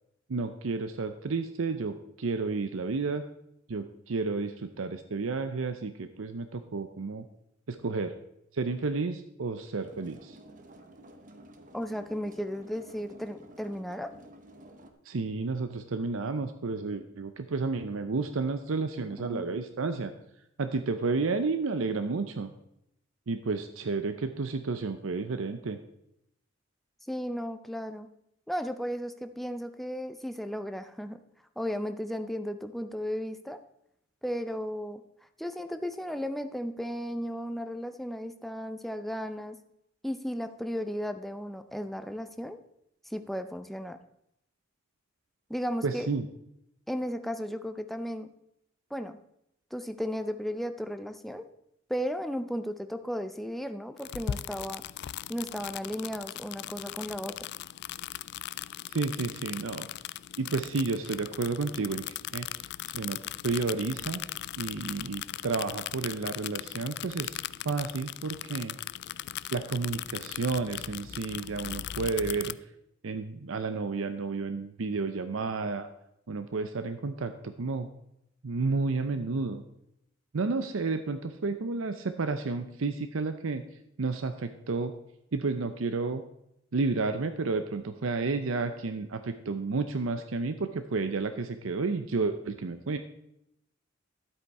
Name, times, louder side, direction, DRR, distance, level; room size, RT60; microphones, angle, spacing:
voice 1, 0.3-3.2 3.7-7.3 7.7-8.1 8.5-10.4 15.1-20.1 20.6-22.5 23.3-25.8 45.8-46.3 58.9-59.9 60.4-62.0 62.3-62.5 62.9-64.2 64.6-68.8 69.5-72.6 73.0-75.9 76.3-77.9 78.4-79.6 80.3-83.6 84.0-84.9 85.3-86.2 86.7-93.0, right 4 dB, 75° right, 9 dB, 0.6 m, -31 dB
sound 1, 9.8-14.9, right 1 dB, 40° right, 1.0 m, -52 dB
voice 2, 11.7-14.1 19.2-19.6 27.1-28.1 28.5-31.2 31.6-33.6 34.2-35.0 35.4-39.6 40.0-42.6 43.1-44.0 45.5-46.1 46.9-48.3 48.9-49.2 49.7-51.4 51.9-54.8 55.3-57.4, equal, ahead, 8 dB, 0.6 m, -35 dB
sound 2, 54.0-72.5, left 12 dB, 55° left, 0.3 m, -39 dB
12.0 x 8.2 x 4.2 m, 0.79 s
head